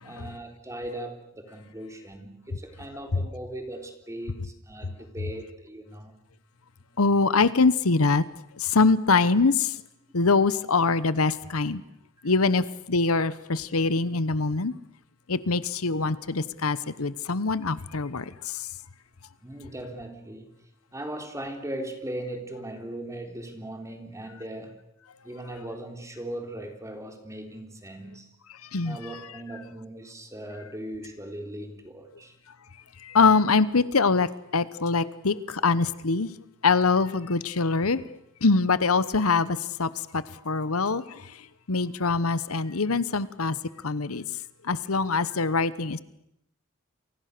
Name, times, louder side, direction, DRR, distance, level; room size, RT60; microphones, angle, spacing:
voice 1, 0.0-6.2 19.4-20.5 20.9-24.8 25.2-28.3 28.8-32.3, right 1 dB, 15° right, 5 dB, 3.7 m, -38 dB
voice 2, 7.0-8.2 8.6-9.7 10.1-11.8 12.2-14.7 15.3-18.7 28.7-29.0 33.0-36.3 36.6-38.0 38.4-41.2 41.7-43.6 43.8-44.2 44.6-46.0, left 4 dB, 80° left, 16 dB, 1.0 m, -24 dB
29.5 x 24.0 x 6.8 m, 0.80 s
head